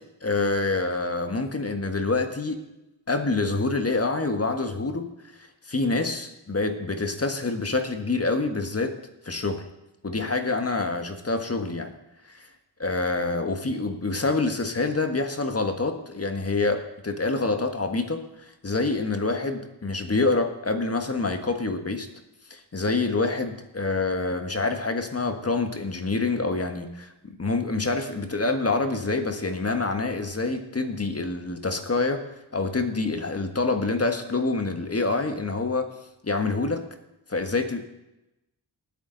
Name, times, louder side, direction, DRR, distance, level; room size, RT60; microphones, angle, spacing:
voice 1, 0.2-2.6 3.1-5.1 5.4-8.9 9.2-9.6 10.0-11.9 12.3-12.5 12.8-22.1 22.5-32.2 32.5-35.9 36.2-36.8 37.3-37.8, left 3 dB, 35° left, 6 dB, 1.6 m, -26 dB
19.0 x 8.7 x 4.0 m, 0.93 s
cardioid pair, 65°, 42 cm